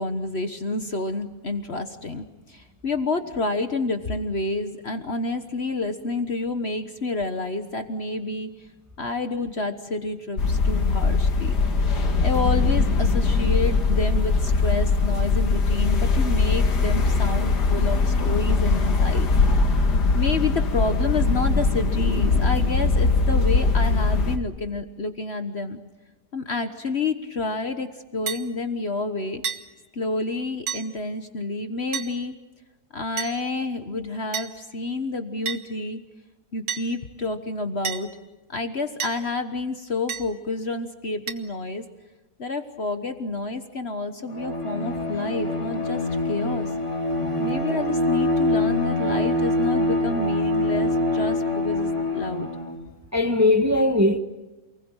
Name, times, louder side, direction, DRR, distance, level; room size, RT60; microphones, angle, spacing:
voice 1, 0.0-8.5 9.0-11.9 12.2-19.3 20.1-25.8 26.3-29.4 29.9-32.3 32.9-36.0 36.5-38.1 38.5-41.9 42.4-46.0 46.3-46.7 47.4-52.5, left 3 dB, 45° left, 1.4 m, -29 dB
sound 1, 10.4-24.4, left 3 dB, 80° left, 2.4 m, -21 dB
sound 2, 28.3-28.5 29.4-29.6 30.7-30.9 31.9-32.1 33.2-33.4 34.3-34.5 35.5-35.6 36.7-36.9 37.8-38.0 39.0-39.2 40.1-40.3 41.3-41.4, right 7 dB, 65° right, 1.8 m, -29 dB
Bowed string instrument, 44.3-52.8, left 1 dB, 15° left, 3.9 m, -25 dB
voice 2, 47.2-47.6 53.1-54.2, left 2 dB, 10° right, 1.4 m, -20 dB
28.5 x 20.0 x 9.0 m
omnidirectional pair, 1.7 m